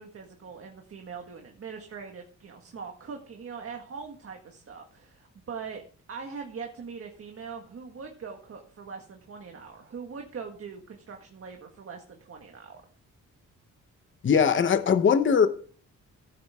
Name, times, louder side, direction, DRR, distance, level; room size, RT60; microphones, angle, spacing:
voice 1, 0.0-5.8 6.1-12.8, right 5 dB, 45° right, 1.7 m, -42 dB
voice 2, 14.2-15.5, left 6 dB, 40° left, 1.0 m, -20 dB
15.0 x 8.7 x 3.6 m
wide cardioid pair, 145°, 32 cm